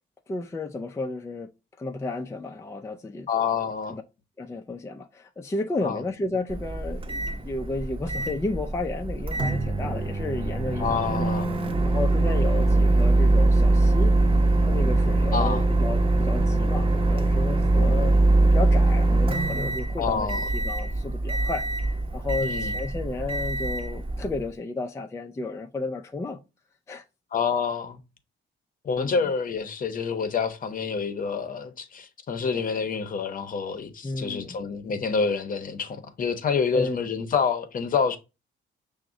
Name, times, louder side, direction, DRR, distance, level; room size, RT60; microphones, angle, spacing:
voice 1, 0.3-1.5 1.8-3.3 3.9-4.0 4.4-11.3 11.8-14.1 14.7-18.2 18.4-21.6 22.1-26.4 26.9-27.0 29.0-29.2 34.0-34.6 36.7-37.0, left 2 dB, 15° left, 0.4 m, -32 dB
voice 2, 3.3-4.0 5.8-6.0 10.8-11.6 15.3-15.6 20.0-20.4 22.4-22.7 27.3-28.0 28.8-38.2, left 5 dB, 45° left, 0.7 m, -27 dB
Microwave oven, 6.5-24.5, right 2 dB, 25° right, 0.8 m, -23 dB
5.9 x 2.1 x 3.7 m
cardioid pair, 90°, 20 cm